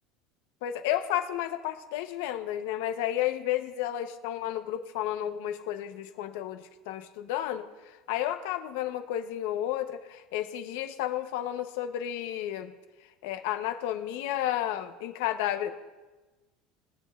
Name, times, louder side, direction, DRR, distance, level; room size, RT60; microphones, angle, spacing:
voice 1, 0.6-12.7 13.2-15.7, left 12 dB, 70° left, 8 dB, 0.9 m, -32 dB
20.5 x 9.0 x 2.5 m, 1.2 s
cardioid pair, 180°, 0 cm